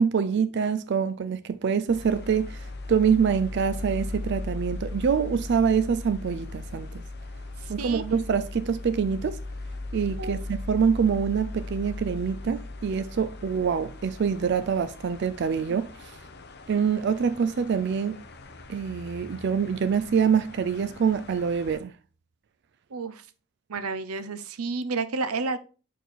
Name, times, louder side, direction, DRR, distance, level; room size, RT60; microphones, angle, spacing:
voice 1, 0.0-7.0 7.7-9.4 9.9-15.9 16.7-18.2 18.7-21.9, right 6 dB, 50° right, 0.3 m, -25 dB
sound 1, 1.9-21.8, left 2 dB, 50° left, 0.8 m, -38 dB
voice 2, 7.6-8.0 10.2-10.4 15.7-15.8 22.9-23.3 23.7-25.6, right 4 dB, 90° right, 0.7 m, -31 dB
6.2 x 4.6 x 4.0 m
head